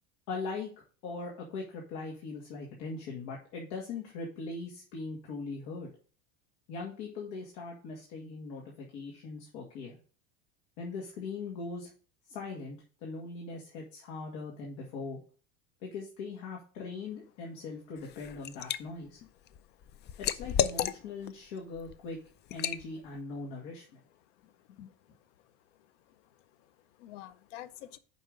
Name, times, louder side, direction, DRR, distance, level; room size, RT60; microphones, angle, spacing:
voice 1, 0.3-0.7 1.0-5.9 6.7-10.0 10.8-11.9 12.3-15.2 15.8-19.2 20.2-22.2 22.5-24.0 24.8-24.9, left 4 dB, 65° left, 2.2 m, -40 dB
Liquid, 18.0-18.8 19.2-21.3 21.8-22.0 22.5-22.8, left 10 dB, 30° left, 0.4 m, -32 dB
voice 2, 19.5-20.1 24.4-24.5 25.1-25.2 25.8-26.3 26.6-28.0, left 13 dB, 90° left, 0.7 m, -50 dB
5.5 x 5.4 x 6.6 m
supercardioid pair, 130°, 35 cm